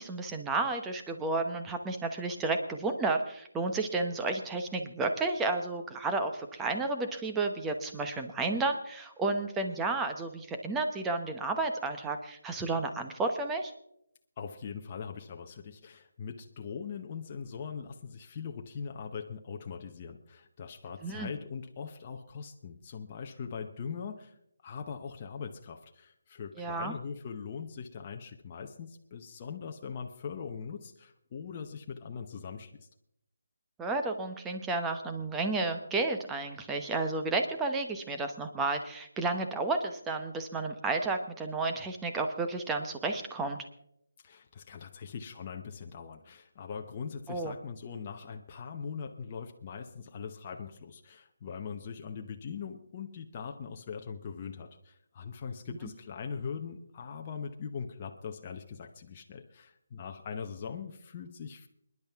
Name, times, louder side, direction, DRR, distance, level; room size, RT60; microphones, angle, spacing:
voice 1, 0.0-13.7 21.0-21.3 26.6-26.9 33.8-43.6 47.3-47.5, right 3 dB, 10° right, 5 dB, 0.9 m, -32 dB
voice 2, 14.4-24.3 24.6-32.9 44.2-61.7, left 6 dB, 25° left, 3 dB, 0.9 m, -41 dB
28.5 x 10.5 x 3.6 m, 0.75 s
hypercardioid pair, 170°, 0 cm